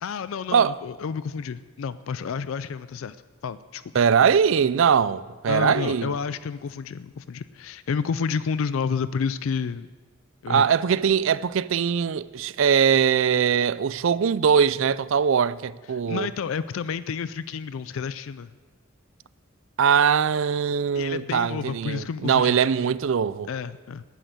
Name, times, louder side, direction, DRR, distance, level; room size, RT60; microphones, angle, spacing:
voice 1, 0.0-3.2 3.4-3.8 5.5-9.9 10.4-10.7 16.1-18.5 20.9-22.6 23.5-24.0, left 6 dB, 75° left, 0.4 m, -30 dB
voice 2, 3.9-6.1 10.5-16.3 19.8-23.5, right 7 dB, 65° right, 0.4 m, -21 dB
11.5 x 10.5 x 8.1 m
head